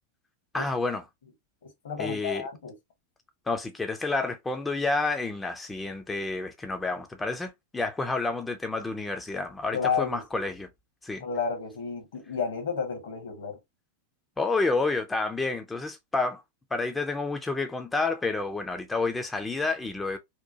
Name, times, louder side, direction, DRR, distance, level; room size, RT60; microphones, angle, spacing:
voice 1, 0.5-1.0 2.0-2.4 3.5-10.7 11.0-11.2 14.4-16.4 16.7-20.2, left 3 dB, 10° left, 0.3 m, -29 dB
voice 2, 1.6-2.8 9.7-10.2 11.2-13.6, left 6 dB, 60° left, 0.8 m, -31 dB
2.8 x 2.1 x 2.6 m
figure-of-eight pair, 90°, 0 cm